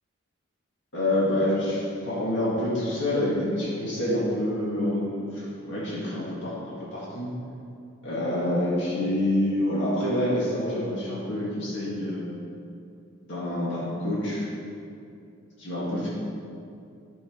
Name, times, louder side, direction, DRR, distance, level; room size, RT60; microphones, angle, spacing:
voice 1, 0.9-7.3 8.0-12.3 13.3-14.5 15.6-16.1, left 1 dB, 65° left, -7 dB, 2.0 m, -27 dB
12.5 x 4.7 x 4.5 m, 2.5 s
head